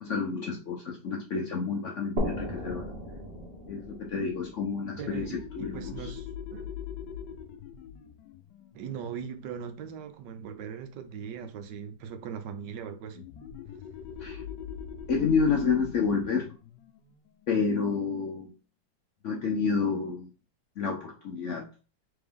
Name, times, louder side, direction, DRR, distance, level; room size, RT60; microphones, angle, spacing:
voice 1, 0.0-2.9 3.7-5.3 5.5-6.1 14.2-14.4 15.1-16.5 17.5-18.5 19.2-20.3 20.8-21.6, left 5 dB, 65° left, 0.8 m, -29 dB
sound 1, 2.2-5.7, equal, 35° right, 1.2 m, -36 dB
sound 2, 4.8-10.1 13.1-18.4, left 8 dB, 80° left, 1.3 m, -43 dB
voice 2, 5.0-6.7 8.7-13.2, right 7 dB, 80° right, 1.3 m, -40 dB
3.5 x 3.4 x 3.5 m
omnidirectional pair, 1.9 m